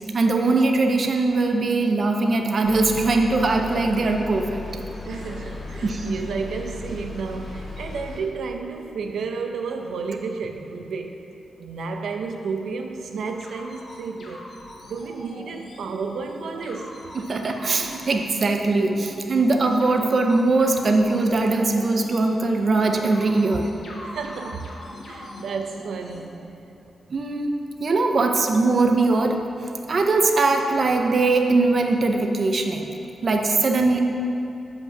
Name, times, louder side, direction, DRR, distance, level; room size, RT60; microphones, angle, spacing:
voice 1, 0.1-4.6 5.8-6.1 17.3-23.7 27.1-27.5 27.8-29.4 29.9-32.9 33.2-34.0, right 3 dB, 40° right, 3 dB, 0.6 m, -21 dB
sound 1, 2.6-8.2, left 3 dB, 40° left, 1.7 m, -36 dB
voice 2, 5.1-11.2 11.6-14.5 14.9-17.0 24.0-26.8, right 4 dB, 85° right, 4 dB, 0.6 m, -32 dB
sound 2, 13.4-26.2, left 1 dB, 55° left, 1.6 m, -41 dB
8.0 x 5.3 x 6.1 m, 2.8 s
wide cardioid pair, 155°, 0 cm